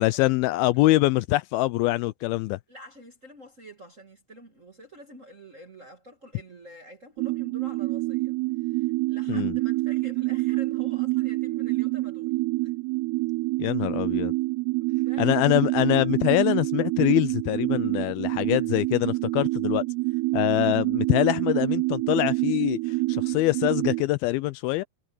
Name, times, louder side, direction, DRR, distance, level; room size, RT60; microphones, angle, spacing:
voice 1, 0.0-2.6 9.3-9.5 13.6-14.3 15.2-19.8 20.3-22.8 23.1-24.8, left 18 dB, 80° left, 2.2 m, -24 dB
voice 2, 2.7-12.3 12.6-12.7 15.0-15.4 20.2-20.5, equal, 40° right, 1.1 m, -48 dB
sound 1, 7.2-24.0, right 22 dB, 85° right, 2.6 m, -27 dB
omnidirectional pair, 4.6 m